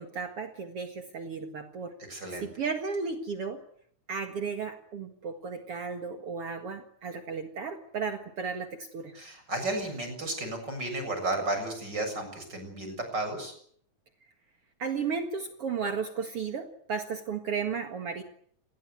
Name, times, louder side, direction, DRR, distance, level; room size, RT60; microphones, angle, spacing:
voice 1, 0.0-1.9 2.4-3.6 4.1-9.1 14.8-18.2, right 5 dB, 55° right, 6 dB, 2.6 m, -34 dB
voice 2, 2.1-2.5 9.1-13.5, right 2 dB, 35° right, 6 dB, 7.9 m, -33 dB
28.5 x 20.5 x 8.2 m, 0.63 s
omnidirectional pair, 3.3 m